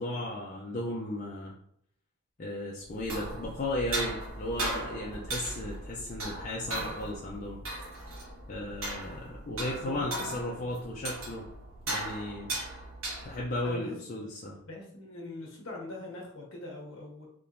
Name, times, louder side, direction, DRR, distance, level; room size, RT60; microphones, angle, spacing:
voice 1, 0.0-1.6 2.4-7.6 8.5-11.5 11.9-12.6 13.2-14.6, left 1 dB, 35° left, -4 dB, 0.5 m, -35 dB
sound 1, 2.9-13.6, right 1 dB, 75° right, 1.2 m, -38 dB
voice 2, 9.7-10.7 13.6-14.2 14.7-17.3, left 2 dB, 60° left, -2 dB, 1.1 m, -42 dB
3.5 x 2.9 x 2.6 m, 0.69 s
head